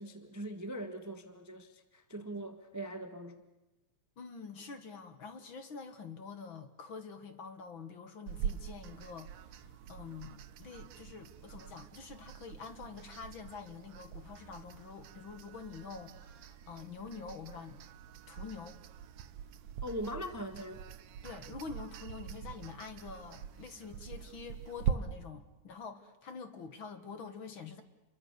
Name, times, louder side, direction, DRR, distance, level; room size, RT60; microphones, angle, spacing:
voice 1, 0.0-3.4 19.8-20.8, right 1 dB, 15° right, 8 dB, 0.6 m, -41 dB
voice 2, 4.2-17.8 18.3-18.8 21.2-27.8, left 5 dB, 50° left, 9 dB, 2.0 m, -46 dB
sound 1, 8.3-24.9, right 9 dB, 70° right, 2.1 m, -43 dB
28.5 x 23.0 x 6.8 m, 1.1 s
omnidirectional pair, 3.4 m